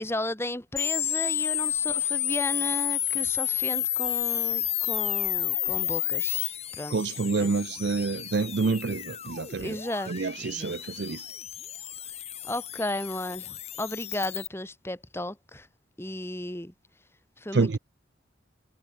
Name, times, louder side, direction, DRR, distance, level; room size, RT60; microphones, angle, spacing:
voice 1, 0.0-6.9 7.4-7.5 9.6-10.1 10.4-10.8 12.4-15.7 16.0-16.7 17.4-17.8, left 1 dB, 10° left, 1.7 m, -34 dB
sound 1, 0.8-14.5, left 12 dB, 30° left, 2.9 m, -31 dB
voice 2, 6.9-9.8 10.1-11.2 17.5-17.8, right 4 dB, 55° right, 0.5 m, -27 dB
head